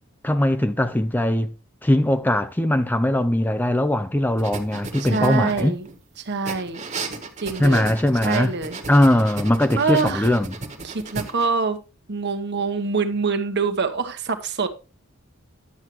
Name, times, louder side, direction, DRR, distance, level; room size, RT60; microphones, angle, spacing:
voice 1, 0.2-1.5 1.8-5.8 7.6-8.5 8.9-10.6, left 1 dB, 10° left, 0.4 m, -20 dB
sound 1, 4.4-6.0 6.4-11.5, right 3 dB, 35° right, 1.4 m, -34 dB
voice 2, 5.1-5.9 6.2-6.8 7.4-7.9 8.2-8.8 9.8-10.3 10.8-11.8 12.1-14.7, right 4 dB, 55° right, 1.1 m, -25 dB
10.5 x 7.3 x 3.1 m
head